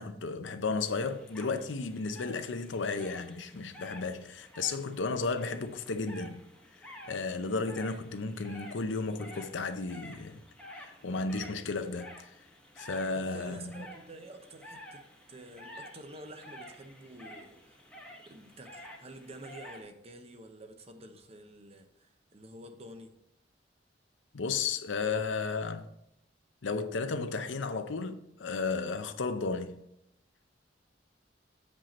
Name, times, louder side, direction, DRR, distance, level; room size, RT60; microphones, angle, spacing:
voice 1, 0.0-6.5 7.1-10.4 10.8-12.3 12.8-13.9 24.3-25.9 26.6-29.8, left 4 dB, 85° left, 0.6 m, -34 dB
sound 1, 0.8-19.8, equal, 5° left, 1.1 m, -51 dB
voice 2, 13.1-17.8 18.2-23.1, right 1 dB, 35° right, 0.8 m, -49 dB
7.4 x 5.3 x 4.2 m
head